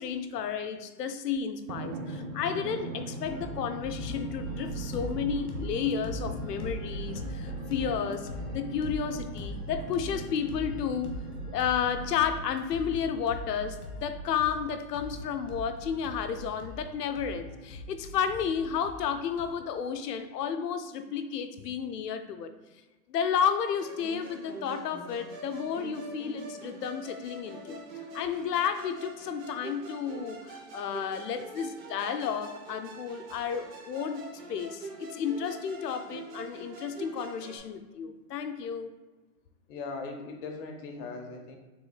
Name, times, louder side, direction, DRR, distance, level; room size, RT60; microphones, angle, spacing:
voice 1, 0.0-8.3 8.5-11.1 11.5-22.5 23.1-27.8 28.1-38.9, left 7 dB, 80° left, 9 dB, 0.6 m, -32 dB
Drum, 1.7-12.7, right 2 dB, 85° right, 0.7 m, -41 dB
sound 1, 3.3-19.5, left 1 dB, 65° left, 1.2 m, -40 dB
Musical instrument, 23.8-37.6, right 2 dB, 25° right, 0.6 m, -44 dB
voice 2, 39.7-41.6, left 3 dB, 35° left, 3 dB, 0.7 m, -39 dB
4.9 x 3.6 x 2.2 m, 1.2 s
hypercardioid pair, 130°, 47 cm